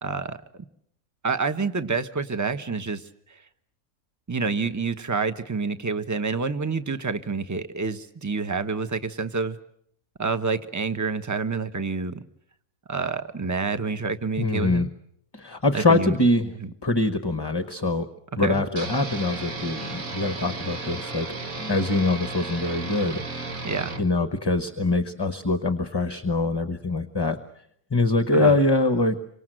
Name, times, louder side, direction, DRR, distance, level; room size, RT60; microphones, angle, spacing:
voice 1, 0.0-0.4 1.2-3.4 4.3-9.6 10.2-12.2 12.9-14.9 15.7-16.2 16.6-16.7 18.4-18.6 23.6-24.0 28.3-28.6, right 4 dB, 15° right, 10 dB, 1.0 m, -28 dB
voice 2, 14.4-14.9 15.3-16.5 16.8-18.1 18.4-21.3 21.6-23.6 24.0-27.4 27.9-29.2, left 2 dB, 20° left, 10 dB, 1.0 m, -23 dB
sound 1, 18.8-24.0, right 3 dB, 85° right, 2.4 m, -34 dB
28.0 x 25.5 x 7.8 m, 0.70 s
omnidirectional pair, 1.4 m